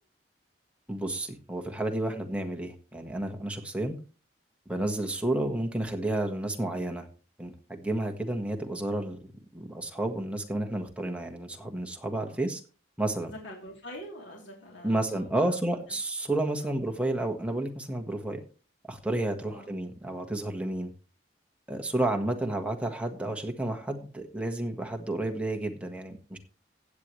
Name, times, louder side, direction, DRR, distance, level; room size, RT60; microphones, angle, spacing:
voice 1, 0.9-3.9 4.7-7.1 7.4-9.2 9.5-12.6 13.0-13.3 14.8-18.4 18.9-20.9 21.7-26.4, right 1 dB, 5° right, 3 dB, 1.5 m, -31 dB
voice 2, 13.2-15.6 16.6-16.7 19.5-19.7, equal, 85° left, -1 dB, 3.3 m, -45 dB
16.0 x 8.5 x 3.2 m, 0.36 s
head